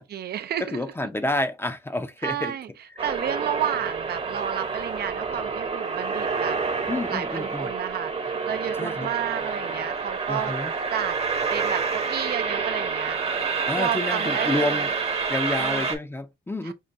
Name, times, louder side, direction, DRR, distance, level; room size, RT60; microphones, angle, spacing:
voice 1, 0.0-0.9 2.2-2.7 3.0-6.6 7.1-10.5 10.9-11.2 11.5-13.2 13.8-14.8 15.5-15.9 16.6-16.7, right 10 dB, 55° right, 0.4 m, -31 dB
voice 2, 0.6-2.6 6.9-7.7 8.8-9.1 10.3-10.7 13.7-14.9 15.3-16.7, left 2 dB, 10° left, 0.5 m, -29 dB
sound 1, 3.0-16.0, right 5 dB, 30° right, 0.8 m, -28 dB
5.4 x 2.2 x 2.6 m
cardioid pair, 90°, 20 cm